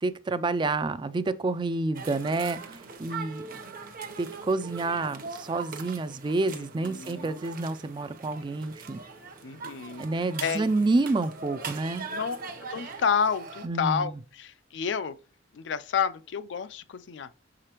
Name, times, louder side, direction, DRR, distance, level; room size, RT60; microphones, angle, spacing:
voice 1, 0.0-3.6 4.2-9.0 10.0-12.1 13.6-14.1, right 3 dB, 25° right, 0.3 m, -29 dB
sound 1, 1.9-13.7, right 5 dB, 45° right, 0.8 m, -41 dB
voice 2, 6.5-7.4 9.4-10.1 10.4-10.7 12.1-12.4 12.7-15.2 15.5-17.3, left 6 dB, 65° left, 0.4 m, -30 dB
6.6 x 4.9 x 2.9 m
head